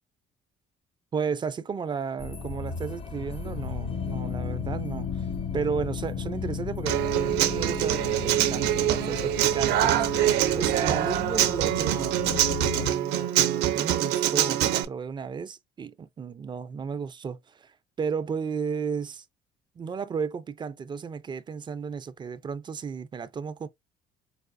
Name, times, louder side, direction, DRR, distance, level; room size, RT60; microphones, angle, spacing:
voice 1, 1.1-5.3 5.5-10.1 10.5-12.2 12.7-17.7 18.0-19.2 19.8-23.7, right 6 dB, 25° right, 0.4 m, -33 dB
sound 1, 2.2-11.5, left 2 dB, 35° left, 0.5 m, -41 dB
sound 2, 2.4-12.9, left 8 dB, 80° left, 2.2 m, -35 dB
Human voice / Acoustic guitar, 6.9-14.8, right 12 dB, 85° right, 0.5 m, -24 dB
4.7 x 2.4 x 2.5 m
cardioid pair, 110°, 17 cm